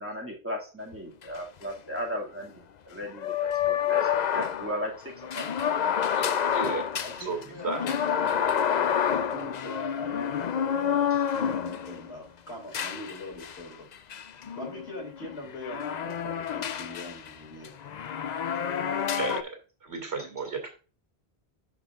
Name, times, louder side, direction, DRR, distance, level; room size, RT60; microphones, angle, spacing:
voice 1, 0.0-5.5, equal, 10° right, -2 dB, 2.3 m, -36 dB
sound 1, 0.9-1.0 1.2-1.3 3.1-12.1 12.7-13.6 14.1-17.3 17.6-19.4, left 8 dB, 50° left, 0.6 m, -29 dB
voice 2, 6.1-6.8 7.2-8.0 19.2-19.5 19.8-20.7, right 4 dB, 80° right, 3 dB, 2.8 m, -34 dB
voice 3, 7.0-13.9 14.5-18.1, left 1 dB, 85° left, 1 dB, 3.1 m, -41 dB
12.0 x 4.8 x 2.5 m, 0.34 s
omnidirectional pair, 1.1 m